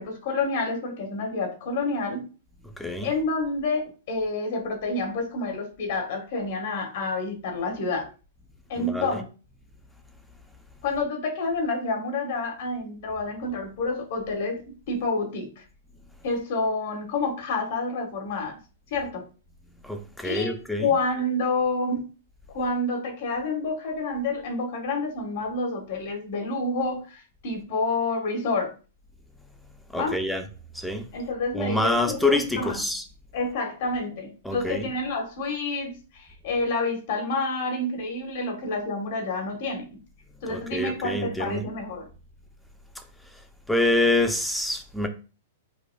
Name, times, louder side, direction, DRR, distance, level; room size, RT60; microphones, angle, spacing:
voice 1, 0.0-2.3 3.0-8.1 8.7-9.3 10.8-15.6 16.2-18.6 18.9-19.3 20.2-22.0 22.5-28.7 29.9-30.2 31.1-32.9 33.3-39.9 40.4-42.1, left 3 dB, 60° left, 1.3 m, -28 dB
voice 2, 2.8-3.1 8.8-9.1 19.8-20.9 29.9-30.4 30.7-31.1 31.5-33.0 34.4-34.9 40.5-41.6 43.0-43.1 43.7-45.1, left 1 dB, 5° left, 0.5 m, -26 dB
5.0 x 2.4 x 2.2 m
hypercardioid pair, 140°, 0 cm